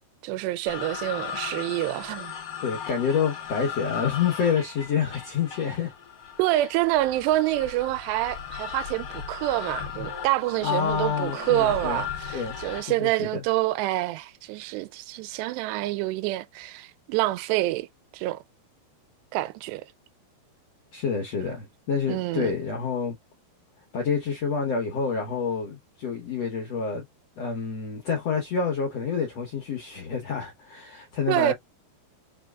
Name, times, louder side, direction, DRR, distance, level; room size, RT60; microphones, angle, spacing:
voice 1, 0.2-2.3 6.4-17.9 18.1-18.4 19.3-19.8 22.1-22.5 31.3-31.5, right 16 dB, 90° right, 2.7 m, -27 dB
sound 1, 0.7-13.0, left 8 dB, 65° left, 1.0 m, -37 dB
voice 2, 2.6-5.9 10.6-12.0 12.3-12.6 12.9-13.4 20.9-23.1 23.9-27.0 27.4-31.5, left 6 dB, 80° left, 1.4 m, -28 dB
6.0 x 3.1 x 2.4 m
omnidirectional pair, 4.7 m